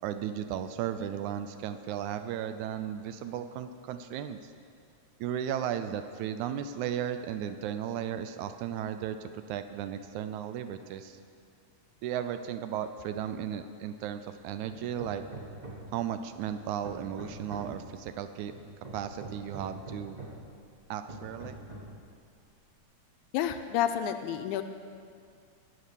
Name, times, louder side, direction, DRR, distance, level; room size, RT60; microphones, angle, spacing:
voice 1, 0.0-4.4 5.2-11.2 12.0-15.2 15.9-18.5 18.9-20.2 20.9-21.6, right 9 dB, 80° right, 10 dB, 2.0 m, -35 dB
Hammer, 14.6-16.0 16.5-17.9 18.5-20.5 21.1-22.0, right 1 dB, 35° right, 0.7 m, -44 dB
voice 2, 23.3-24.6, left 10 dB, 80° left, 8 dB, 2.0 m, -29 dB
19.0 x 6.6 x 7.0 m, 2.2 s
omnidirectional pair, 3.6 m